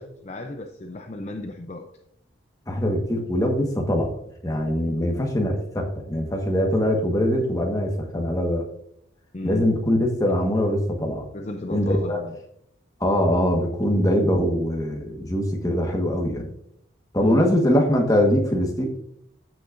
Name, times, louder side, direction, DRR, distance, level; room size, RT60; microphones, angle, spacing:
voice 1, 0.0-1.9 4.8-5.1 9.3-9.7 11.3-12.4 17.2-17.6, left 2 dB, 35° left, 5 dB, 0.5 m, -34 dB
voice 2, 2.7-4.1 4.4-8.7 9.4-11.2 11.7-12.2 13.0-16.5 17.1-18.9, equal, 20° left, 1 dB, 1.4 m, -22 dB
14.5 x 6.2 x 2.6 m, 0.74 s
head